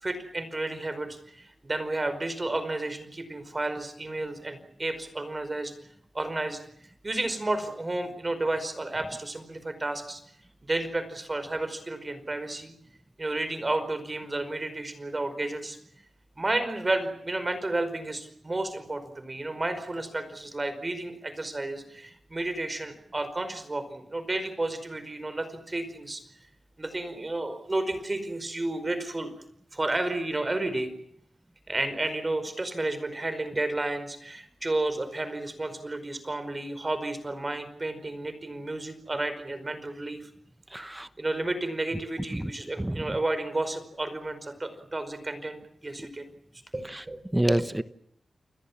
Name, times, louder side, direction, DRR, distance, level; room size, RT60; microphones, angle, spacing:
voice 1, 0.0-5.7 6.1-6.6 7.0-10.2 10.6-12.7 13.2-15.8 16.4-26.2 26.8-29.3 29.7-30.9 31.7-40.3 40.8-46.3 46.7-47.7, right 2 dB, 30° right, 11 dB, 5.0 m, -32 dB
voice 2, 40.7-41.1 42.4-42.5 42.8-43.0 46.9-47.0 47.3-47.8, right 1 dB, 10° right, 13 dB, 1.0 m, -27 dB
30.0 x 21.5 x 7.4 m, 0.69 s
wide cardioid pair, 75°, 0 cm